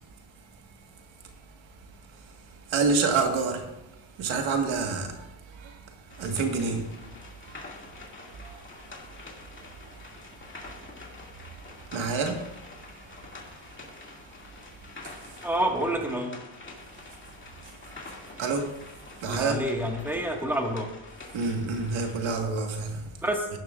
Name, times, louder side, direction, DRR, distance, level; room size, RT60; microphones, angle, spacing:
voice 1, 2.7-3.7 4.2-5.8 6.2-6.8 7.5-7.6 8.3-8.6 11.9-12.5 15.0-15.1 17.8-17.9 18.4-18.7 19.2-19.6 21.3-23.1, right 4 dB, 85° right, 1.7 m, -28 dB
sound 1, 6.1-22.4, left 3 dB, 25° left, 2.2 m, -46 dB
voice 2, 15.4-16.4 19.3-20.9 23.2-23.5, right 1 dB, 5° right, 1.6 m, -28 dB
15.5 x 11.0 x 2.5 m
cardioid pair, 130°, 46 cm